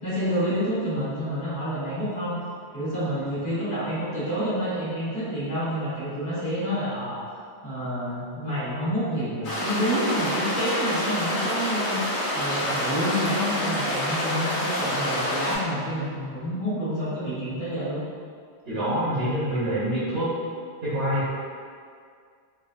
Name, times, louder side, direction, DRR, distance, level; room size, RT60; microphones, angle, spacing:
voice 1, 0.0-2.4 2.7-7.2 7.6-12.0 12.3-18.0, equal, 65° left, -11 dB, 1.5 m, -28 dB
sound 1, 9.4-15.5, left 1 dB, 90° left, 1.4 m, -27 dB
voice 2, 18.7-20.4 20.8-21.3, right 1 dB, 70° right, -11 dB, 1.1 m, -26 dB
3.7 x 2.3 x 2.3 m, 2.1 s
omnidirectional pair, 1.1 m